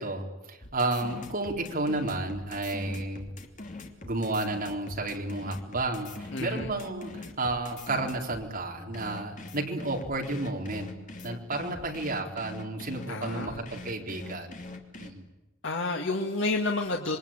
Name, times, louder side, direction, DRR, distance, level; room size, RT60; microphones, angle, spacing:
voice 1, 0.0-3.3 4.0-10.9 11.2-14.6 15.0-15.3, right 2 dB, 45° right, 1 dB, 4.4 m, -32 dB
sound 1, 0.6-8.5 8.9-15.1, left 2 dB, 40° left, 2.9 m, -43 dB
voice 2, 6.3-6.7 13.1-13.7 15.6-17.2, left 2 dB, 65° left, 1 dB, 2.1 m, -30 dB
27.0 x 23.0 x 9.0 m, 1.1 s
head